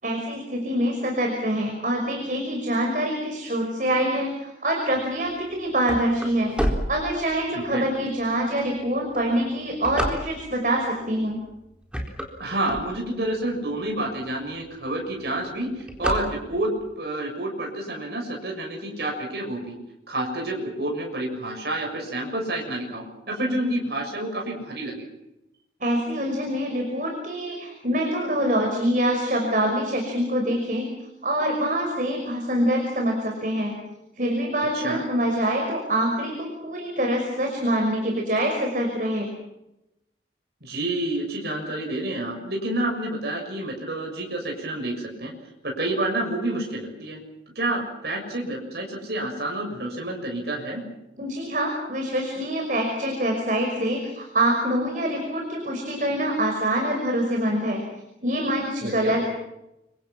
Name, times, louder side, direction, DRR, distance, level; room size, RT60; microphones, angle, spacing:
voice 1, 0.0-6.5 6.9-11.4 25.8-30.9 31.2-33.7 34.2-39.3 51.2-57.8 58.2-59.3, right 1 dB, 45° right, 2 dB, 5.8 m, -25 dB
sound 1, 5.4-7.6 8.2-8.3 9.0-10.7 11.3-11.5 11.8-13.4 13.9-14.0 14.2-14.3 14.6-14.9 15.2-16.8, equal, 5° right, 4.0 m, -29 dB
voice 2, 7.5-7.9 12.4-16.7 17.0-19.8 20.1-25.0 34.7-35.0 40.6-45.3 45.6-47.2 47.6-50.8 58.8-59.2, right 1 dB, 60° right, 1 dB, 7.0 m, -29 dB
29.5 x 25.0 x 6.1 m, 0.89 s
head